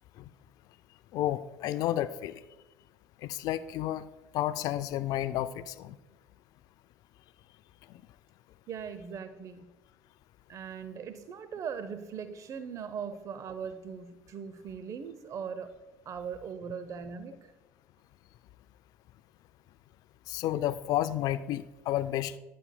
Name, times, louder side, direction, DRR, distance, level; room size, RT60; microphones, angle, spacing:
voice 1, 1.1-2.4 3.2-4.1 4.3-5.9 20.3-22.3, left 13 dB, 60° left, 14 dB, 0.3 m, -31 dB
voice 2, 8.7-9.7 10.5-15.8 16.1-17.5, right 7 dB, 45° right, 11 dB, 0.6 m, -40 dB
11.0 x 8.2 x 2.2 m, 1.1 s
hypercardioid pair, 75°, 7 cm